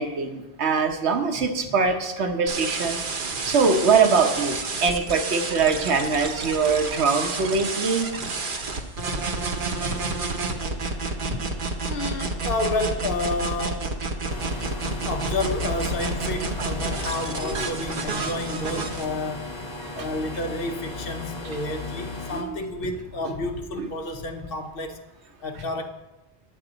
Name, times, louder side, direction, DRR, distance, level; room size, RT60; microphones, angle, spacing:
voice 1, 0.0-3.0 3.4-8.1 17.4-17.9 19.8-20.1 22.3-22.6 23.8-23.9, right 5 dB, 75° right, 1.2 m, -23 dB
sound 1, 2.5-19.1, right 3 dB, 50° right, 0.9 m, -30 dB
voice 2, 9.5-10.1 10.5-10.6 11.2-11.4 11.8-14.0 15.1-19.5 19.9-25.0 25.4-25.9, left 2 dB, 60° left, 0.9 m, -30 dB
sound 2, 14.3-22.4, left 4 dB, 35° left, 1.2 m, -35 dB
9.1 x 8.5 x 3.9 m
omnidirectional pair, 1.1 m